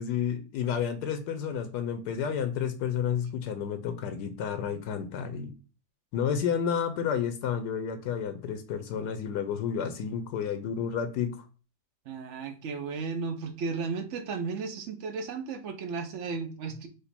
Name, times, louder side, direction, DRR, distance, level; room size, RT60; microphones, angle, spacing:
voice 1, 0.0-5.5 6.1-11.4, left 7 dB, 85° left, 8 dB, 1.2 m, -31 dB
voice 2, 12.1-16.9, right 4 dB, 60° right, 7 dB, 0.8 m, -34 dB
5.1 x 2.4 x 4.1 m, 0.35 s
omnidirectional pair, 1.7 m